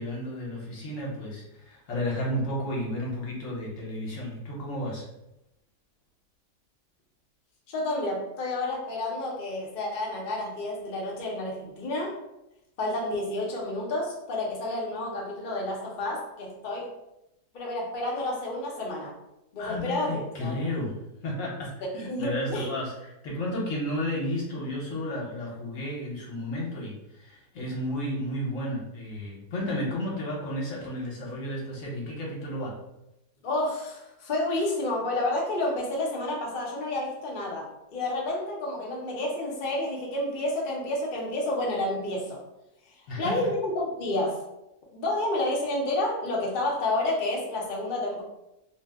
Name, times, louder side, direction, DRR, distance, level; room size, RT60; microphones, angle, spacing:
voice 1, 0.0-5.0 19.6-32.8 43.1-43.4, left 1 dB, 55° left, -3 dB, 1.1 m, -32 dB
voice 2, 7.7-12.1 12.8-16.9 17.5-19.1 19.5-20.7 21.9-22.7 33.4-37.7 37.9-42.4 42.9-44.4 44.9-48.2, left 1 dB, 80° left, -2 dB, 0.4 m, -30 dB
2.7 x 2.0 x 3.4 m, 0.89 s
omnidirectional pair, 1.8 m